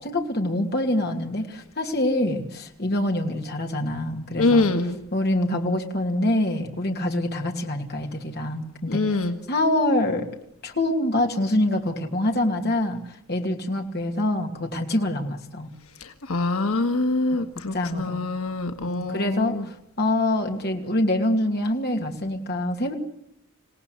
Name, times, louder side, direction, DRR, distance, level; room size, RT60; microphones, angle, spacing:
voice 1, 0.0-4.7 5.1-9.2 9.5-10.3 10.6-13.0 13.3-15.7 17.3-17.4 17.7-18.2 18.9-22.9, left 1 dB, 45° left, 3 dB, 2.6 m, -25 dB
voice 2, 4.4-5.0 8.9-9.4 16.0-19.7, left 3 dB, 85° left, 6 dB, 1.7 m, -24 dB
27.0 x 17.5 x 8.1 m, 0.81 s
head